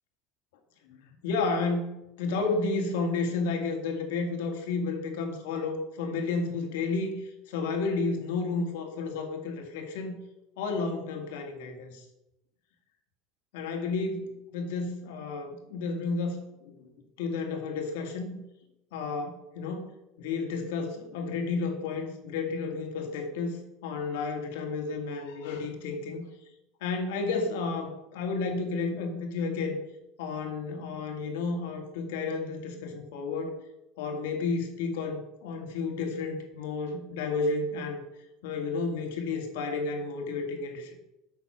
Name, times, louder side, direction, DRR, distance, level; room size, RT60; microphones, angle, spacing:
voice 1, 1.2-10.2 10.6-12.0 13.5-16.9 17.2-18.4 18.9-19.9 20.2-26.2 26.8-29.8 30.2-33.5 34.0-38.0 38.4-41.0, left 4 dB, 85° left, 3 dB, 2.1 m, -32 dB
8.2 x 6.1 x 5.9 m, 0.91 s
cardioid pair, 175°, 0 cm